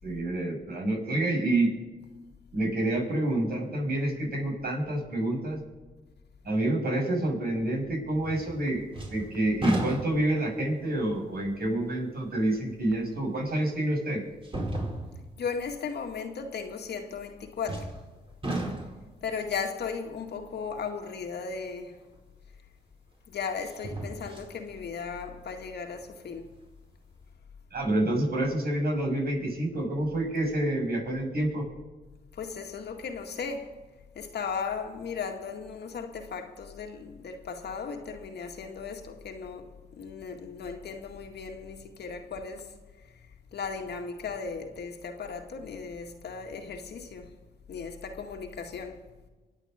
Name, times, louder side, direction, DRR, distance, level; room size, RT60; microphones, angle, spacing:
voice 1, 0.0-1.7 2.5-5.6 6.4-8.8 9.1-14.2 27.7-31.6, right 1 dB, 60° right, 6.1 m, -28 dB
sound 1, 8.2-8.6 8.9-10.5 11.1-11.2 13.1-13.2 14.4-15.3 17.7-18.1 18.4-19.1 22.1-22.2 23.6-24.5 25.0-25.1, right 1 dB, 30° right, 4.5 m, -33 dB
voice 2, 15.4-17.9 19.2-22.0 23.3-26.5 32.3-33.8 34.2-42.8 43.5-47.3 47.7-49.0, left 5 dB, 75° left, 1.9 m, -36 dB
25.0 x 8.4 x 5.1 m
supercardioid pair, 50°, 17 cm